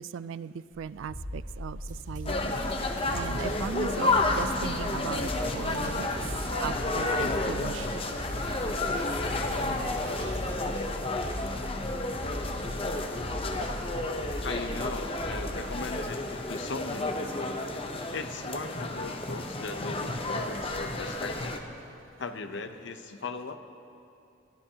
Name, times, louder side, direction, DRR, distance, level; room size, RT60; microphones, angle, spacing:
voice 1, 0.0-2.6 3.1-6.2 6.6-8.0, right 7 dB, 85° right, 16 dB, 0.3 m, -38 dB
sound 1, 0.7-15.7, equal, 60° right, 1.9 m, -39 dB
sound 2, 1.9-11.9 12.4-12.5, equal, 40° right, 2.0 m, -45 dB
sound 3, 2.3-21.6, left 2 dB, 30° left, 0.7 m, -31 dB
voice 2, 14.4-16.2 16.5-17.6 18.1-21.6 22.2-23.6, left 3 dB, 70° left, 8 dB, 0.7 m, -38 dB
21.5 x 12.5 x 2.8 m, 2.7 s
head